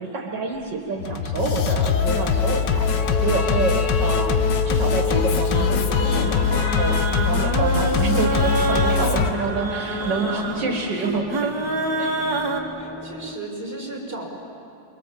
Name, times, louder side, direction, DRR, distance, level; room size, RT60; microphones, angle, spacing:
voice 1, 0.0-4.4 4.6-11.5 12.0-12.2, right 3 dB, 80° right, 1 dB, 2.4 m, -27 dB
sound 1, 0.6-13.4, left 1 dB, 5° left, 0.9 m, -34 dB
Singing, 1.0-9.3, left 6 dB, 85° left, 1.7 m, -22 dB
voice 2, 3.3-3.8 9.8-10.4 12.7-14.3, right 2 dB, 35° right, -3 dB, 6.1 m, -36 dB
sound 2, 5.6-12.6, right 2 dB, 60° right, 2.4 m, -27 dB
28.0 x 24.0 x 7.6 m, 2.6 s
omnidirectional pair, 1.9 m